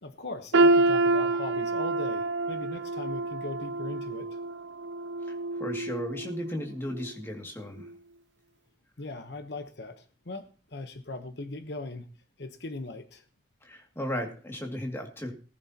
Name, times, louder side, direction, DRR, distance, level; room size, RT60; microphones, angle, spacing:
voice 1, 0.0-4.4 9.0-12.1 12.4-13.2, left 2 dB, 60° left, 7 dB, 1.0 m, -39 dB
sound 1, 0.5-6.5 6.9-7.1 7.9-8.0, right 2 dB, 75° right, 0.5 m, -27 dB
voice 2, 5.2-7.9 13.6-15.3, left 1 dB, 15° left, 1 dB, 2.3 m, -35 dB
19.0 x 10.5 x 2.9 m, 0.38 s
head